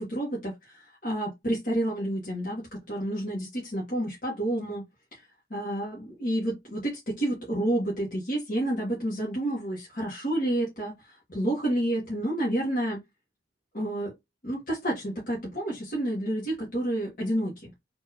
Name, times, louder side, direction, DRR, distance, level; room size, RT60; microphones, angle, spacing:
voice 1, 0.0-4.8 5.1-5.2 5.5-13.0 13.7-14.1 14.4-17.7, right 1 dB, 40° left, 1.2 m, -30 dB
3.9 x 2.6 x 2.8 m
head